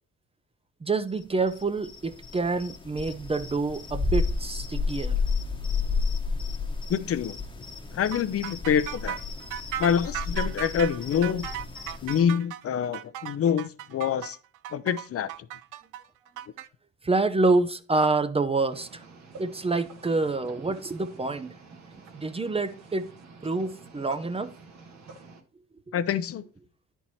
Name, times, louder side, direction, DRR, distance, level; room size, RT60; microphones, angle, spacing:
voice 1, 0.8-5.2 17.0-19.0 19.4-21.5 22.1-23.1 23.4-24.5, right 3 dB, 20° right, 0.6 m, -27 dB
sound 1, 1.5-12.2, left 4 dB, 15° left, 1.1 m, -31 dB
voice 2, 6.9-7.4 7.9-9.2 9.8-11.5 12.0-14.4 14.7-15.3 25.9-26.4, left 8 dB, 50° left, 0.6 m, -26 dB
sound 2, 8.1-16.7, right 12 dB, 85° right, 0.5 m, -37 dB
sound 3, 18.7-25.4, right 3 dB, 65° right, 1.5 m, -48 dB
9.8 x 4.5 x 4.2 m
cardioid pair, 90°, 30 cm